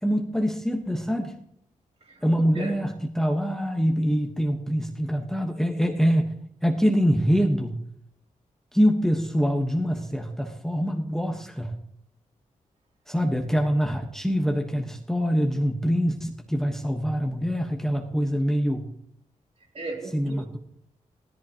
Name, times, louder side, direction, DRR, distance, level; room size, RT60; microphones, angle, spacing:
voice 1, 0.0-1.3 2.2-7.8 8.7-11.8 13.1-18.9 20.1-20.6, equal, 5° left, 1.3 m, -24 dB
voice 2, 2.0-2.8 13.2-13.6 19.7-20.6, right 3 dB, 50° right, 3.3 m, -37 dB
17.0 x 14.0 x 3.0 m
wide cardioid pair, 125°, 13 cm